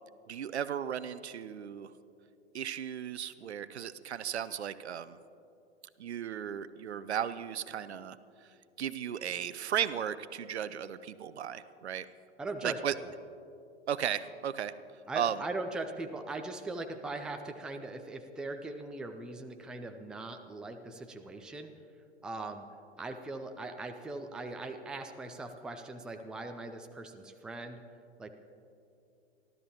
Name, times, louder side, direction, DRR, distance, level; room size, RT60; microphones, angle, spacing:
voice 1, 0.3-1.9 2.5-5.2 6.0-8.2 8.8-12.1 12.6-12.9 13.9-14.7 15.2-15.4, right 9 dB, 70° right, 15 dB, 0.7 m, -35 dB
voice 2, 12.4-13.1 15.1-21.7 22.2-22.7 23.0-27.8 28.2-28.3, right 2 dB, ahead, 6 dB, 0.5 m, -40 dB
29.5 x 12.5 x 2.9 m, 2.7 s
figure-of-eight pair, 105°, 34 cm